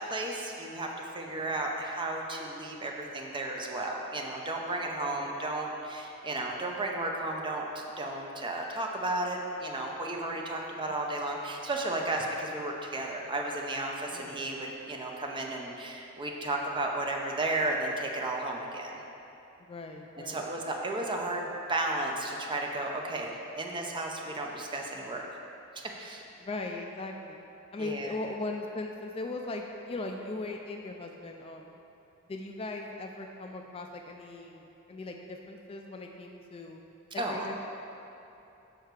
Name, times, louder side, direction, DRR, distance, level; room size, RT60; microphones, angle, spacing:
voice 1, 0.0-19.0 20.3-25.2 25.7-26.2 27.8-28.1 37.2-37.5, right 2 dB, 20° right, 0 dB, 0.7 m, -33 dB
voice 2, 10.3-11.1 14.1-14.4 19.6-20.5 26.4-27.4 27.7-31.8 32.3-36.8 37.1-37.6, left 2 dB, 25° left, 2 dB, 0.3 m, -39 dB
6.7 x 5.5 x 4.7 m, 2.9 s
head